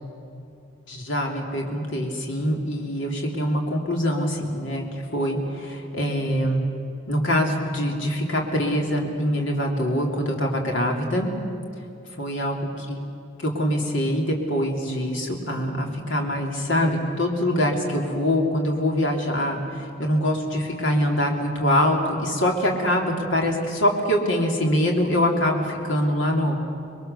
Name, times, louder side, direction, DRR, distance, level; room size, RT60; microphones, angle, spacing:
voice 1, 0.9-4.8 5.1-6.6 7.1-11.3 12.2-13.0 13.4-26.7, equal, 70° left, 1 dB, 3.1 m, -24 dB
26.0 x 21.5 x 6.9 m, 2.7 s
head